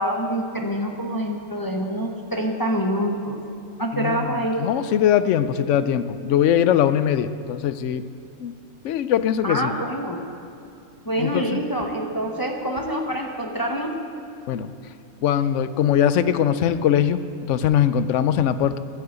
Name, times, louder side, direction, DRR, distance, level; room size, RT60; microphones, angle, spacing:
voice 1, 0.0-3.4 3.8-4.7 9.4-10.2 11.0-14.0, right 1 dB, 15° left, 1 dB, 1.0 m, -26 dB
voice 2, 3.9-4.3 4.6-8.0 8.4-8.5 8.8-9.7 11.2-11.6 14.5-14.7 15.2-17.2 17.5-18.8, left 9 dB, 65° left, 13 dB, 0.9 m, -21 dB
12.5 x 9.5 x 8.1 m, 2.7 s
omnidirectional pair, 1.5 m